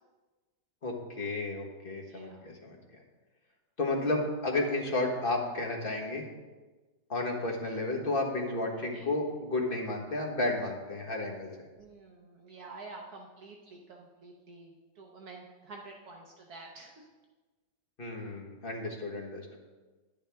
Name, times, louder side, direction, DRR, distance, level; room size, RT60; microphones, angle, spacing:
voice 1, 0.8-2.8 3.8-6.2 7.1-11.5 18.0-19.6, left 2 dB, 35° left, 0 dB, 1.4 m, -32 dB
voice 2, 2.1-2.4 4.0-4.1 8.9-9.1 11.8-17.1, right 3 dB, 65° right, 1 dB, 1.4 m, -49 dB
10.5 x 10.5 x 3.4 m, 1.3 s
omnidirectional pair, 1.8 m